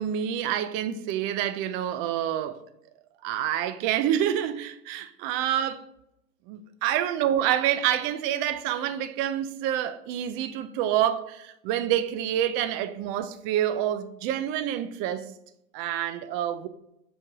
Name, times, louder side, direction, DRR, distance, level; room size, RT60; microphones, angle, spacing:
voice 1, 0.0-2.6 3.2-5.8 6.5-15.3 15.7-16.7, right 11 dB, 30° right, 0.6 m, -27 dB
7.0 x 4.5 x 4.7 m
hypercardioid pair, 130°, 42 cm